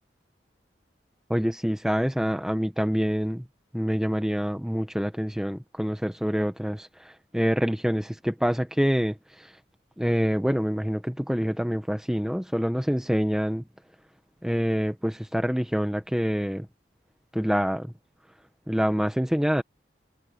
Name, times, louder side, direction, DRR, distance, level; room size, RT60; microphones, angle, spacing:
voice 1, 1.3-3.4 3.7-9.5 10.0-13.6 14.4-16.7 17.3-17.9 18.7-19.6, equal, 5° right, 0.8 m, -26 dB
head